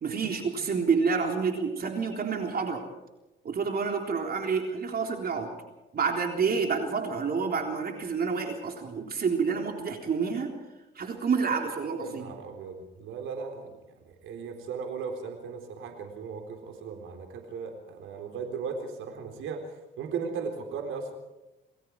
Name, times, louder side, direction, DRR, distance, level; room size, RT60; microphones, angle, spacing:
voice 1, 0.0-2.8 3.4-5.5 5.9-10.5 11.0-12.3, right 5 dB, 50° right, 3 dB, 3.7 m, -28 dB
voice 2, 12.0-13.8 14.0-19.6 20.0-21.1, right 5 dB, 85° right, 4 dB, 4.0 m, -37 dB
29.0 x 20.0 x 4.8 m, 0.98 s
cardioid pair, 90°, 20 cm